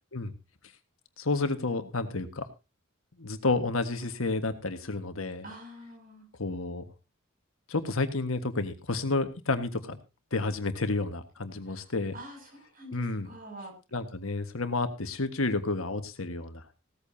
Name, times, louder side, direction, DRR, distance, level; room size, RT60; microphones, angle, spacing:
voice 1, 1.2-2.5 3.2-5.5 6.4-6.8 7.7-10.0 10.3-12.1 12.9-13.3 13.9-16.8, left 3 dB, 80° left, 8 dB, 1.6 m, -30 dB
voice 2, 5.4-6.3 11.7-11.9 12.1-13.7, right 1 dB, 40° right, 2 dB, 6.9 m, -46 dB
17.0 x 14.0 x 2.8 m, 0.27 s
head